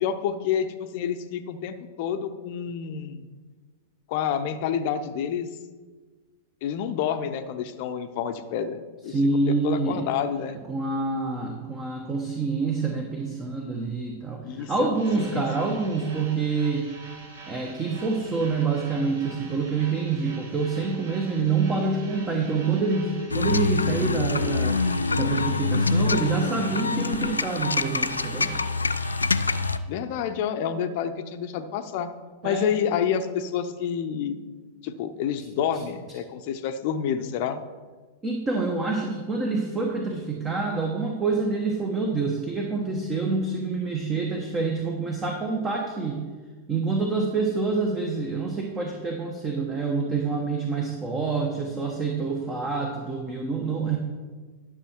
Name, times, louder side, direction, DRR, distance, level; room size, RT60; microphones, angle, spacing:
voice 1, 0.0-3.2 4.1-5.5 6.6-8.8 9.0-9.1 9.5-10.6 14.4-14.9 15.2-15.4 29.9-32.1 32.4-34.4 34.8-37.6, left 8 dB, 50° left, 9 dB, 0.7 m, -28 dB
voice 2, 9.1-10.0 10.7-16.9 17.5-24.8 25.1-28.5 32.4-32.7 38.2-46.2 46.7-54.0, right 4 dB, 20° right, 1 dB, 1.2 m, -27 dB
sound 1, 14.9-29.7, right 3 dB, 60° right, 1.9 m, -45 dB
sound 2, 23.3-29.8, left 4 dB, 80° left, 0.4 m, -25 dB
11.5 x 6.3 x 4.5 m, 1.4 s
figure-of-eight pair, 95°, 0 cm